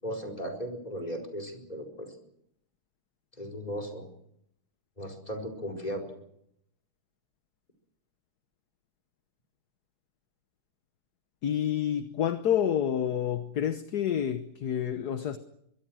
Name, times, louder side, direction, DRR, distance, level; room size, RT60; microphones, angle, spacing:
voice 1, 0.0-2.1 3.4-4.1 5.0-6.1, equal, 20° left, 4.7 m, -36 dB
voice 2, 11.4-15.4, left 9 dB, 55° left, 1.4 m, -28 dB
24.0 x 22.5 x 6.3 m
omnidirectional pair, 2.3 m